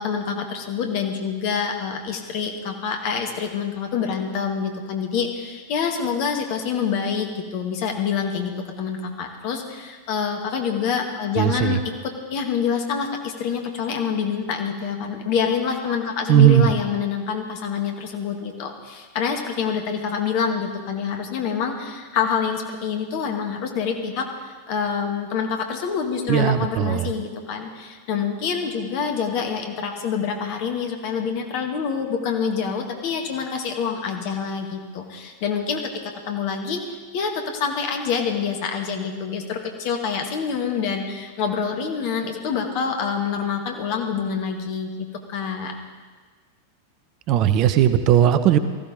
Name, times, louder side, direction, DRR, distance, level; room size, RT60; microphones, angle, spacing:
voice 1, 0.0-8.5 8.8-11.8 12.0-35.9 36.3-44.9 45.3-45.7, left 6 dB, 45° left, 3 dB, 1.9 m, -26 dB
voice 2, 11.4-11.8 16.3-16.7 26.3-27.1 47.3-48.6, right 11 dB, 40° right, 12 dB, 0.7 m, -17 dB
19.0 x 14.5 x 4.0 m, 1.5 s
figure-of-eight pair, 90°, 0 cm